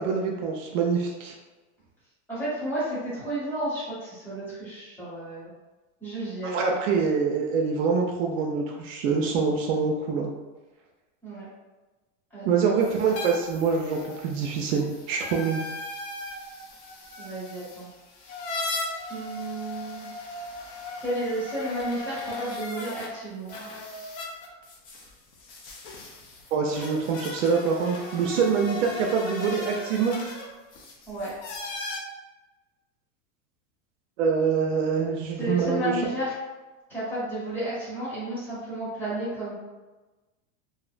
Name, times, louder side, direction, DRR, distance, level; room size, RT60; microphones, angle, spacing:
voice 1, 0.0-1.3 6.5-10.3 12.4-15.6 26.5-30.2 34.2-35.9, right 5 dB, 70° right, 0 dB, 0.5 m, -25 dB
voice 2, 2.3-5.5 6.0-6.6 6.9-7.0 11.2-11.5 12.3-12.7 17.2-17.9 19.1-20.1 21.0-23.5 31.1-31.3 35.3-36.3 36.9-39.5, right 1 dB, 5° left, -11 dB, 0.7 m, -32 dB
sound 1, 12.8-23.1 23.5-32.0, left 2 dB, 45° left, 0.5 m, -38 dB
2.6 x 2.0 x 2.4 m, 1.2 s
supercardioid pair, 165°, 39 cm